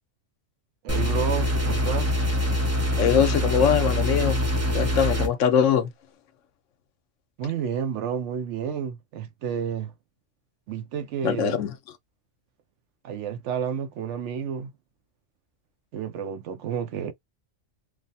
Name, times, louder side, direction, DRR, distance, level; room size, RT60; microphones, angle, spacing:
voice 1, 0.8-2.2 7.4-9.9 10.7-11.6 13.0-14.7 15.9-17.1, right 7 dB, 70° right, 0.8 m, -30 dB
sound 1, 0.9-5.3, left 1 dB, 25° right, 0.3 m, -24 dB
voice 2, 3.0-4.4 4.7-5.9 11.2-11.7, left 8 dB, 75° left, 0.9 m, -22 dB
3.2 x 2.0 x 2.7 m
omnidirectional pair, 1.3 m